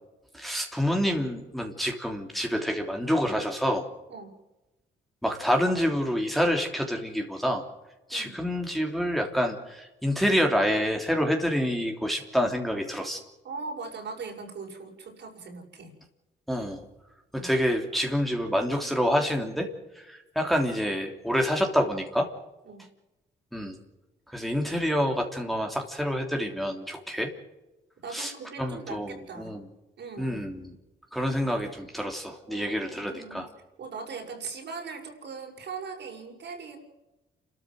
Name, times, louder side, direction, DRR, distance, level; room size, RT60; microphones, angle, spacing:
voice 1, 0.3-3.8 5.2-7.6 8.1-13.2 16.5-16.8 17.3-19.7 19.9-22.3 23.5-23.8 24.3-27.3 28.1-28.3 28.6-29.6 30.2-30.7 31.1-33.5, equal, ahead, 2 dB, 3.2 m, -27 dB
voice 2, 13.4-15.9 17.4-17.5 22.6-22.9 28.0-29.6 30.0-30.4 32.4-33.4 33.8-36.8, right 4 dB, 60° right, 2 dB, 6.7 m, -40 dB
28.5 x 13.5 x 7.8 m, 1.0 s
cardioid pair, 90°, 20 cm